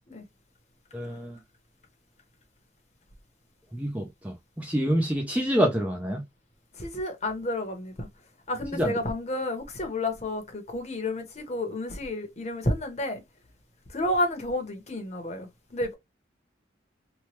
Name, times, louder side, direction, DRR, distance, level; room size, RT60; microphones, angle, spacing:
voice 1, 0.9-1.4 3.7-6.2 8.7-8.9, equal, 5° right, 0.4 m, -27 dB
voice 2, 6.8-8.1 8.5-13.2 13.9-15.9, left 1 dB, 35° left, 0.8 m, -30 dB
3.0 x 2.2 x 2.8 m
head